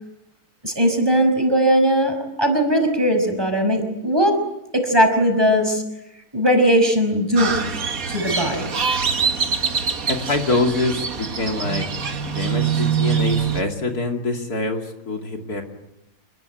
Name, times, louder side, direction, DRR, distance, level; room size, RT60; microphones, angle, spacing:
voice 1, 0.6-4.4 4.7-5.8 6.3-7.6 8.1-8.7, equal, 15° right, 4 dB, 5.4 m, -19 dB
Crow, 7.4-13.6, right 6 dB, 60° right, 2.0 m, -24 dB
voice 2, 10.1-11.1 11.4-11.9 12.2-15.6, left 3 dB, 70° left, 3 dB, 3.1 m, -24 dB
28.0 x 21.0 x 9.2 m, 0.89 s
omnidirectional pair, 1.7 m